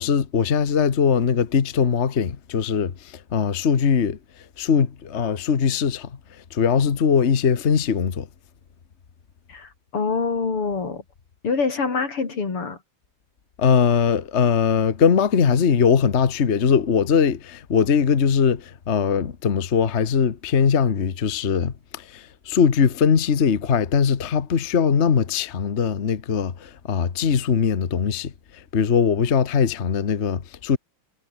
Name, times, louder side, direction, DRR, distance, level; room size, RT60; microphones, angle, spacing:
voice 1, 0.0-4.2 4.6-6.1 6.5-8.3 13.6-30.8, left 6 dB, 35° left, 1.3 m, -21 dB
voice 2, 9.5-11.0 11.4-12.8, left 4 dB, 85° left, 4.8 m, -25 dB
omnidirectional pair, 2.4 m